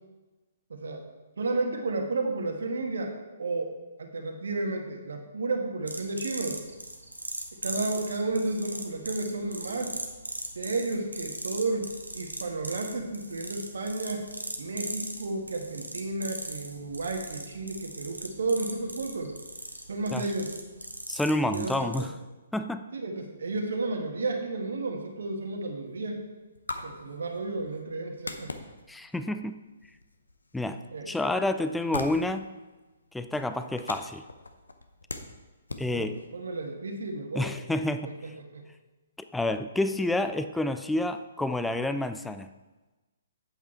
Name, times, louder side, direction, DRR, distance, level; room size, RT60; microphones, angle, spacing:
voice 1, 0.7-1.0 1.4-3.1 3.4-3.7 4.0-6.6 7.6-9.9 10.5-14.3 14.6-19.3 19.9-20.5 21.4-22.1 22.9-26.2 26.8-28.5 30.9-31.1 35.9-37.5 38.2-38.6, right 3 dB, 65° right, 3 dB, 1.5 m, -32 dB
sound 1, 5.9-22.1, right 1 dB, 90° right, 1.2 m, -39 dB
voice 2, 21.1-22.1 22.5-22.8 28.9-29.6 30.5-30.8 31.1-32.5 33.1-34.2 35.8-36.2 37.3-38.1 39.3-42.5, left 1 dB, 5° left, 9 dB, 0.4 m, -29 dB
sound 2, 25.0-36.8, left 2 dB, 75° left, 0.9 m, -43 dB
8.7 x 7.9 x 4.4 m, 1.2 s
figure-of-eight pair, 125°, 0 cm